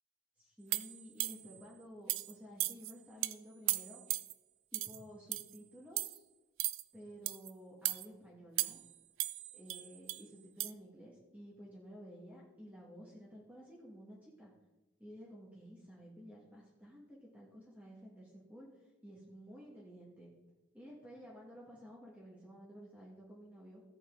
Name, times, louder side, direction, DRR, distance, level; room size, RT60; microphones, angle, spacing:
voice 1, 0.4-4.0 4.7-6.2 6.9-8.8 9.5-14.5 15.0-20.3 20.7-23.8, equal, 5° right, -4 dB, 2.1 m, -53 dB
sound 1, 0.7-1.6 2.1-2.3 2.6-2.9 3.2-3.3 3.7-4.3 4.7-5.0 5.3-5.6 6.0-6.2 6.6-6.8 7.3-7.5 7.9-8.1 8.6-8.9 9.2-10.2 10.6-10.7, right 17 dB, 60° right, 0.4 m, -36 dB
14.5 x 8.7 x 3.9 m, 1.1 s
head